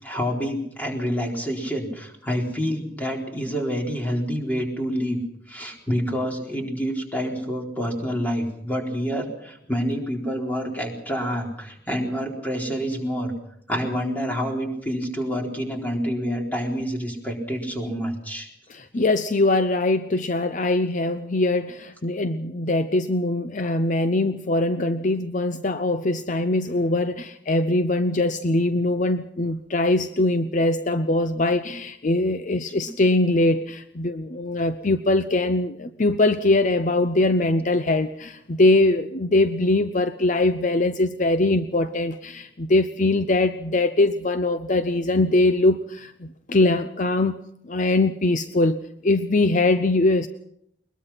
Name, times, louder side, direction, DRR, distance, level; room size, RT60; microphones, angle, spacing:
voice 1, 0.0-5.2 5.5-13.3 13.7-18.5 32.7-32.8, equal, 10° left, 0 dB, 4.2 m, -27 dB
voice 2, 18.7-47.4 47.6-50.3, left 2 dB, 45° left, 10 dB, 0.7 m, -22 dB
22.0 x 21.0 x 5.8 m, 0.74 s
head